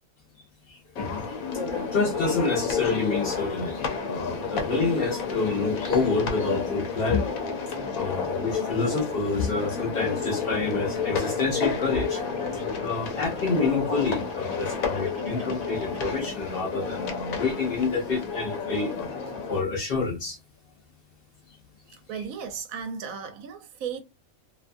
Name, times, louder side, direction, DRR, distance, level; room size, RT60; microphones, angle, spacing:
voice 1, 0.7-1.3 1.7-7.3 7.9-12.2 12.5-19.1 19.5-20.4 22.1-22.2, left 4 dB, 55° left, 0.7 m, -28 dB
sound 1, 1.0-19.6, left 5 dB, 85° left, 1.0 m, -31 dB
sound 2, 3.2-16.3, right 2 dB, 25° right, 0.8 m, -47 dB
voice 2, 21.9-24.0, right 7 dB, 80° right, 1.0 m, -35 dB
2.6 x 2.3 x 2.5 m
omnidirectional pair, 1.4 m